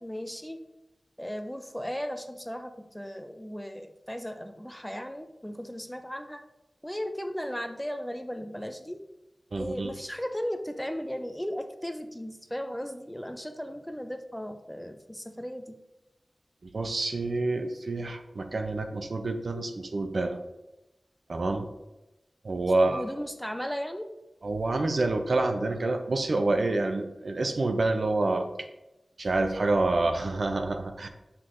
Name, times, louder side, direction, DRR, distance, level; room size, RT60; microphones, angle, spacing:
voice 1, 0.0-0.6 1.2-6.4 6.8-9.0 9.6-15.8 22.7-24.1, equal, 5° left, 7 dB, 0.4 m, -36 dB
voice 2, 9.5-9.9 16.7-20.4 21.3-21.7 22.4-23.1 24.4-28.7 29.2-31.1, right 2 dB, 65° right, 6 dB, 0.5 m, -27 dB
6.4 x 5.8 x 2.6 m, 0.97 s
wide cardioid pair, 85°, 0 cm